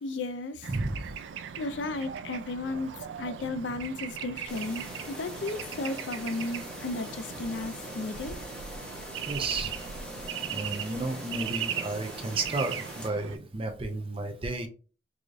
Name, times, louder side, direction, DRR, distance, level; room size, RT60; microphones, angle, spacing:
voice 1, 0.0-0.7 1.6-8.4, left 2 dB, 75° left, 0.4 m, -34 dB
Bird / Traffic noise roadway noise, 0.6-13.4, right 8 dB, 80° right, 0.3 m, -39 dB
voice 2, 0.7-1.0 9.3-9.7 10.4-14.7, right 2 dB, 30° right, 0.5 m, -32 dB
sound 1, 4.5-13.1, equal, 5° left, 0.8 m, -42 dB
4.8 x 2.5 x 2.6 m
head